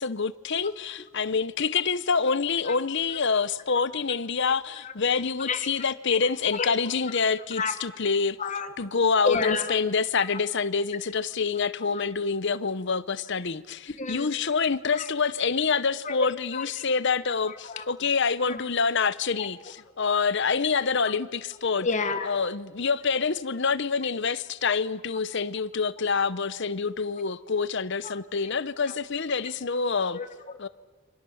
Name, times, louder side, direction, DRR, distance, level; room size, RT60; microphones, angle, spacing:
voice 1, 0.0-8.4 8.8-21.9 22.3-30.2 30.6-30.7, left 5 dB, 55° left, 0.9 m, -26 dB
voice 2, 5.4-5.7 6.1-6.7 7.5-7.8 8.4-8.7 9.2-9.7 10.1-10.4 11.9-12.0 14.0-14.3 14.9-15.1 15.9-16.8 17.2-17.9 18.4-18.6 19.4-19.5 21.0-21.1 21.8-22.3 28.0-28.2 28.9-29.0 30.1-30.6, left 4 dB, 35° left, 1.5 m, -31 dB
28.5 x 25.5 x 7.1 m
head